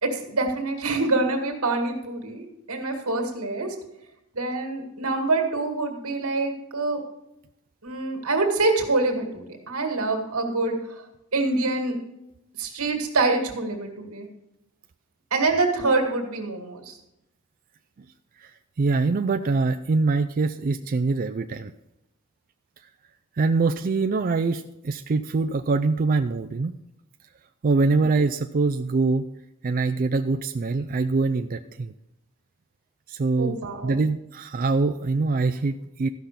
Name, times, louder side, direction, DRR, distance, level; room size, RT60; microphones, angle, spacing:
voice 1, 0.0-3.7 4.3-7.0 7.8-10.8 11.3-12.0 12.6-14.3 15.3-17.0 33.4-34.0, right 3 dB, 85° right, 3 dB, 2.1 m, -25 dB
voice 2, 18.8-21.7 23.4-26.7 27.6-29.3 29.6-31.9 33.1-33.6 33.8-36.1, right 3 dB, 40° right, 8 dB, 0.4 m, -24 dB
13.5 x 5.8 x 6.7 m, 0.89 s
head